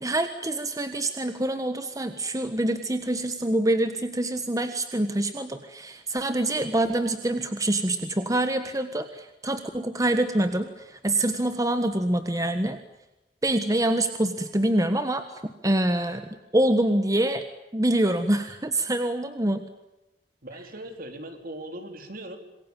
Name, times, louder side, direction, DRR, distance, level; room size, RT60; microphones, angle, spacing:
voice 1, 0.0-12.8 13.4-16.3 16.5-17.4 17.7-19.6, right 1 dB, 20° right, 8 dB, 1.4 m, -25 dB
voice 2, 20.4-22.4, right 1 dB, 55° right, 6 dB, 4.0 m, -39 dB
27.0 x 21.5 x 9.1 m, 0.95 s
head